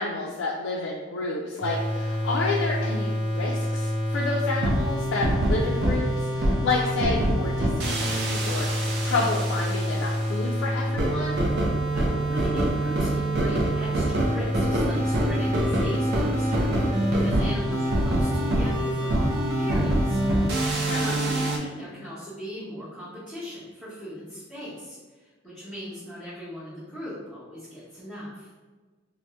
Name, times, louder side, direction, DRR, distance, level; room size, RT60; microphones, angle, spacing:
voice 1, 0.0-11.4 20.9-21.1, left 3 dB, 70° left, -3 dB, 0.3 m, -30 dB
sound 1, 1.6-21.6, right 1 dB, 55° right, 0.4 m, -25 dB
voice 2, 11.9-20.2 20.9-28.5, equal, ahead, -15 dB, 0.9 m, -39 dB
2.7 x 2.0 x 3.4 m, 1.3 s
head